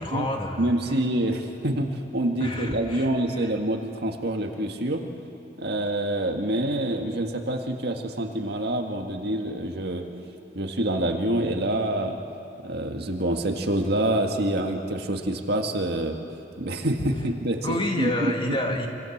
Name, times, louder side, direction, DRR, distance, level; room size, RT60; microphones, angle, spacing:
voice 1, 0.0-1.0 2.4-3.5 17.6-18.9, left 1 dB, 30° left, 2 dB, 2.5 m, -29 dB
voice 2, 0.6-5.0 5.6-10.1 10.5-12.2 12.6-16.2 16.6-18.3, right 1 dB, 60° right, 3 dB, 1.9 m, -26 dB
26.5 x 26.0 x 7.4 m, 2.7 s
head